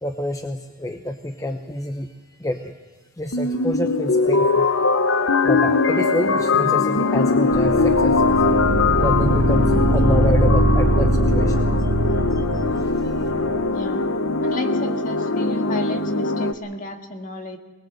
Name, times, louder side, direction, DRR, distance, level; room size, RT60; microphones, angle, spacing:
voice 1, 0.0-2.7 3.2-4.7 5.4-8.3 9.0-11.9 12.3-13.3, left 1 dB, 15° left, 6 dB, 0.7 m, -28 dB
sound 1, 3.3-16.5, left 3 dB, 75° left, 0.9 m, -21 dB
sound 2, 7.5-13.7, right 1 dB, 70° right, 1.6 m, -21 dB
voice 2, 13.7-14.0 14.4-17.6, left 2 dB, 40° left, 4 dB, 1.8 m, -33 dB
22.5 x 20.0 x 7.7 m, 1.2 s
head